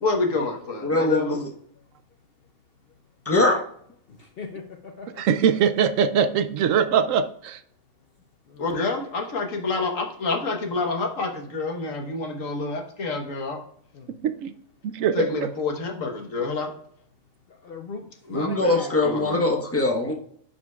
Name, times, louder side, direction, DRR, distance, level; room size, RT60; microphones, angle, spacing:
voice 1, 0.0-1.4 8.6-13.6 15.1-16.7 18.3-19.4, left 3 dB, 75° left, 2 dB, 1.6 m, -28 dB
voice 2, 0.8-1.5 3.3-3.6 18.3-20.1, left 2 dB, 10° left, 0 dB, 0.9 m, -22 dB
voice 3, 4.1-5.2 8.5-8.7 13.9-14.1 17.5-19.1, left 4 dB, 55° left, 4 dB, 0.7 m, -40 dB
voice 4, 5.2-7.6 14.4-14.5 14.8-15.3, right 7 dB, 75° right, 11 dB, 0.9 m, -22 dB
10.5 x 5.1 x 2.3 m, 0.64 s
omnidirectional pair, 1.4 m